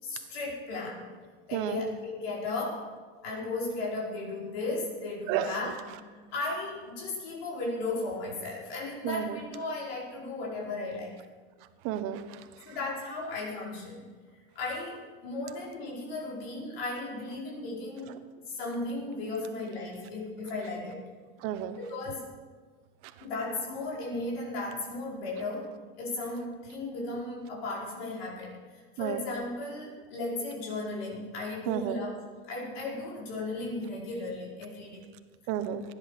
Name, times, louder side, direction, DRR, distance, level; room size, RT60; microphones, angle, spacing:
voice 1, 0.0-1.1 1.5-2.9 3.2-11.2 12.6-14.1 14.6-18.1 18.5-21.0 21.8-22.3 23.2-32.1 32.5-35.0, left 2 dB, 90° left, -5 dB, 5.2 m, -35 dB
voice 2, 5.3-5.7 9.0-9.4 11.8-12.4 21.4-21.8 29.0-29.2 31.7-32.0 35.5-35.8, right 11 dB, 45° right, 9 dB, 1.1 m, -31 dB
17.0 x 10.5 x 6.6 m, 1.5 s
supercardioid pair, 165°, 29 cm